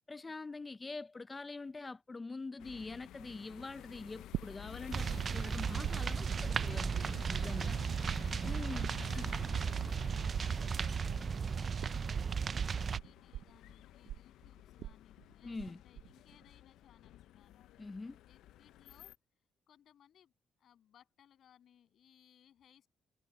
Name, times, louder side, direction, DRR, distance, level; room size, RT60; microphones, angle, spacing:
voice 1, 0.1-7.7 8.4-9.3 15.4-15.8 17.8-18.2, left 3 dB, 25° left, 0.6 m, -44 dB
sound 1, 2.6-19.1, left 13 dB, 85° left, 0.5 m, -52 dB
sound 2, 4.3-5.2 5.4-7.8 8.1-15.7 16.0-16.5, right 12 dB, 85° right, 0.6 m, -45 dB
sound 3, 4.9-13.0, right 6 dB, 45° right, 0.4 m, -35 dB
voice 2, 9.1-17.7 18.3-19.1 19.7-20.3 20.6-22.9, left 9 dB, 65° left, 7.3 m, -66 dB
cardioid pair, 90°, 0 cm